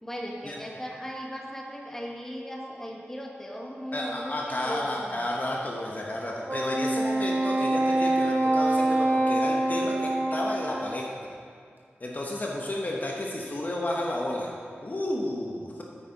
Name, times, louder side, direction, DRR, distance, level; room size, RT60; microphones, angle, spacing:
voice 1, 0.0-5.3, equal, 10° left, -1 dB, 1.2 m, -37 dB
voice 2, 3.9-11.3 12.0-14.5 14.8-15.8, left 1 dB, 40° left, -2 dB, 1.0 m, -32 dB
Wind instrument woodwind instrument, 6.5-11.0, right 2 dB, 55° right, 1.4 m, -25 dB
9.1 x 8.9 x 3.9 m, 2.2 s
wide cardioid pair, 100°, 4 cm